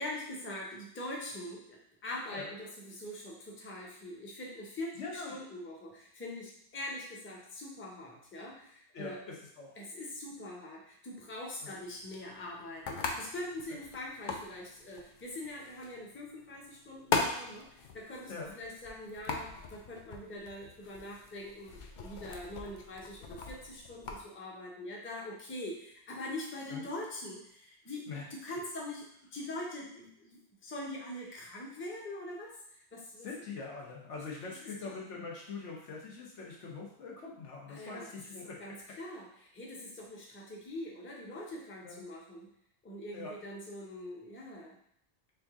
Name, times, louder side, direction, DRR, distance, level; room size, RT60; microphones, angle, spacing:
voice 1, 0.0-9.2 9.8-29.1 29.3-33.3 34.8-34.9 37.7-38.1 38.6-42.5 42.8-44.8, left 1 dB, 15° left, -3 dB, 0.5 m, -43 dB
voice 2, 4.9-5.4 8.9-9.7 11.6-11.7 13.7-13.8 18.3-18.5 26.7-26.8 28.1-28.2 33.2-38.6 41.8-42.0 43.1-43.4, left 4 dB, 85° left, -2 dB, 1.3 m, -43 dB
sound 1, 11.7-24.2, left 4 dB, 60° left, 0.5 m, -40 dB
3.5 x 2.7 x 3.5 m, 0.72 s
omnidirectional pair, 1.2 m